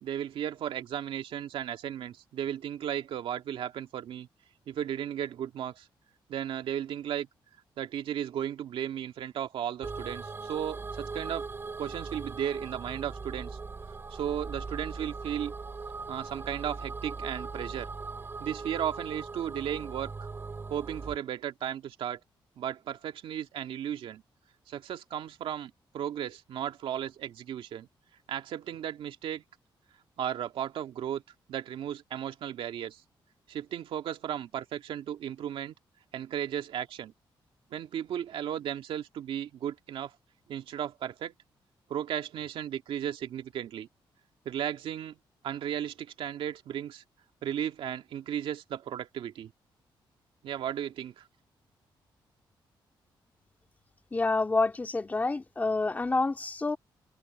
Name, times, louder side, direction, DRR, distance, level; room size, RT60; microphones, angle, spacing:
voice 1, 0.0-4.3 4.7-5.9 6.3-7.3 7.8-11.5 11.8-13.6 14.1-15.5 16.1-17.9 18.4-20.3 20.7-22.2 22.6-24.2 24.7-27.9 28.3-29.4 30.2-31.2 31.5-33.0 33.5-35.7 36.1-37.1 37.7-40.1 40.5-41.3 41.9-43.9 44.5-45.2 45.4-47.0 47.4-49.5 50.4-51.3, right 10 dB, 80° right, 2.1 m, -35 dB
sound 1, 9.8-21.2, right 4 dB, 25° right, 4.0 m, -39 dB
voice 2, 54.1-56.8, left 3 dB, 20° left, 2.2 m, -28 dB
open air
wide cardioid pair, 160°, 9 cm